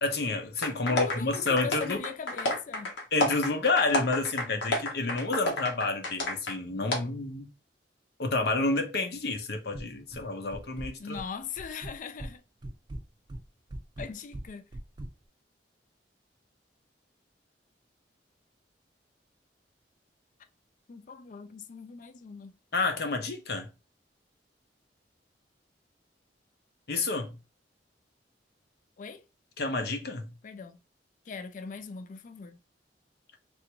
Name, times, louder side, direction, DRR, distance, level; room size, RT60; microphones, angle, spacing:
voice 1, 0.0-2.0 3.1-7.5 8.2-11.2 22.7-23.7 26.9-27.3 29.6-30.3, left 3 dB, 60° left, 0.7 m, -29 dB
sound 1, 0.6-6.6 6.9-7.0, left 1 dB, 85° left, 1.0 m, -31 dB
voice 2, 0.9-2.9 11.0-12.4 14.0-14.6 20.9-22.5 29.0-29.2 30.4-30.8 31.3-32.6, left 5 dB, 45° left, 0.4 m, -40 dB
sound 2, 9.7-10.2 10.5-11.3 11.6-12.3 12.6-15.1, right 1 dB, 25° right, 0.4 m, -40 dB
3.3 x 2.6 x 2.9 m
head